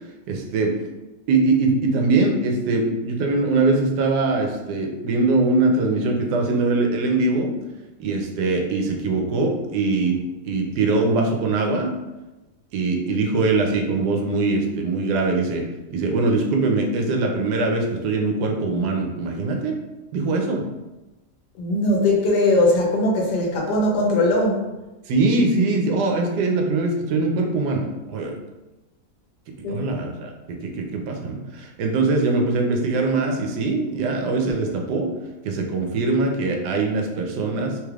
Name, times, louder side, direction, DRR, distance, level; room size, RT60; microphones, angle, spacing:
voice 1, 0.3-0.7 1.3-7.5 8.0-11.9 12.7-15.6 15.9-19.8 20.1-20.7 25.1-28.3 29.7-35.1 35.4-37.8, right 3 dB, 80° right, 2 dB, 1.2 m, -22 dB
voice 2, 21.6-24.6 29.6-29.8, left 1 dB, 80° left, -1 dB, 1.3 m, -20 dB
3.2 x 3.2 x 2.3 m, 1.1 s
omnidirectional pair, 1.8 m